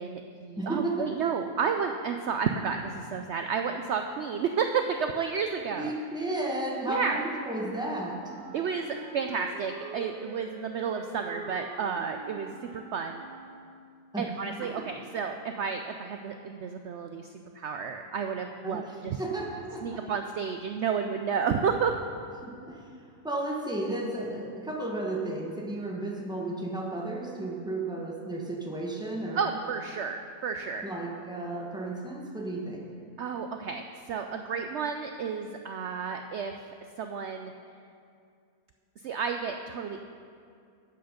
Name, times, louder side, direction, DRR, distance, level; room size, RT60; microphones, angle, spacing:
voice 1, 0.0-5.9 6.9-7.2 8.5-13.2 14.2-17.3 17.5-19.2 19.8-22.0 29.4-30.8 33.2-36.5 37.0-37.5 39.0-40.0, right 6 dB, 80° right, 6 dB, 0.6 m, -31 dB
voice 2, 0.6-1.2 5.7-8.3 14.1-14.3 14.6-14.9 18.6-20.0 22.4-22.8 23.2-29.5 30.8-32.8, right 2 dB, 5° right, -1 dB, 1.1 m, -33 dB
Wind instrument woodwind instrument, 8.2-14.0, right 4 dB, 50° right, 0.8 m, -45 dB
12.0 x 7.9 x 5.1 m, 2.3 s
omnidirectional pair, 1.7 m